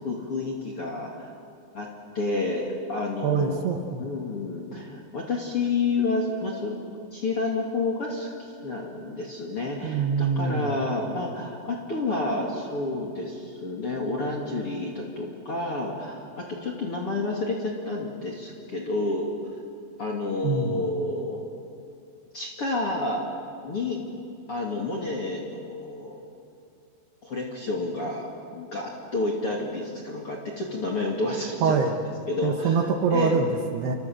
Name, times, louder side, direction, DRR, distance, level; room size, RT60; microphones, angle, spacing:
voice 1, 0.0-1.3 1.7-1.9 2.1-3.6 4.0-6.7 7.1-19.3 20.0-21.4 22.3-23.2 23.6-24.0 24.5-26.2 27.2-28.3 28.5-32.0 32.3-33.4, left 3 dB, 40° left, -1 dB, 2.5 m, -30 dB
voice 2, 3.2-4.1 9.8-10.8 20.4-20.9 31.6-32.0 32.4-33.9, right 5 dB, 65° right, 4 dB, 2.9 m, -24 dB
28.0 x 25.0 x 7.8 m, 2.4 s
omnidirectional pair, 5.8 m